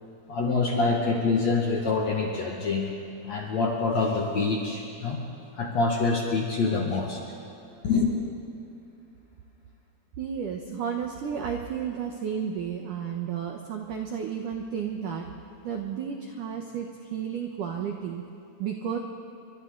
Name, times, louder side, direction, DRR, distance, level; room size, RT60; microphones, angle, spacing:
voice 1, 0.3-2.9 3.2-5.2 5.6-7.2 7.8-8.1, left 4 dB, 50° left, -1 dB, 2.2 m, -25 dB
voice 2, 10.2-15.3 15.6-18.2 18.6-19.0, right 7 dB, 90° right, 2 dB, 1.8 m, -32 dB
29.5 x 24.5 x 4.0 m, 2.8 s
omnidirectional pair, 5.6 m